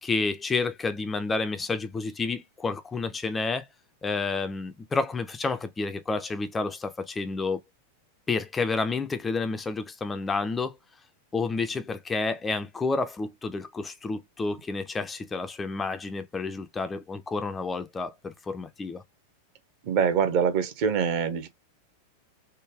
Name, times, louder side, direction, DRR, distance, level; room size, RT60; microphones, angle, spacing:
voice 1, 0.0-3.7 4.0-7.6 8.3-10.8 11.3-19.0, left 3 dB, 15° left, 0.4 m, -30 dB
voice 2, 19.8-21.5, right 7 dB, 45° right, 0.7 m, -24 dB
3.3 x 2.1 x 3.4 m
figure-of-eight pair, 90°, 0 cm